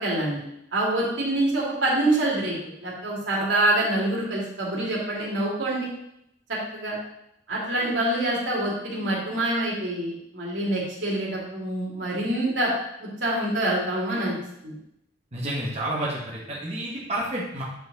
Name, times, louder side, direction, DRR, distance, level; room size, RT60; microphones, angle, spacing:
voice 1, 0.0-0.4 0.7-2.5 2.8-5.9 6.7-7.0 7.5-12.7 13.0-14.3 14.6-14.7, right 1 dB, 85° right, -5 dB, 2.6 m, -26 dB
voice 2, 15.3-17.6, right 1 dB, 35° right, -5 dB, 1.5 m, -30 dB
8.3 x 4.5 x 4.1 m, 0.78 s
head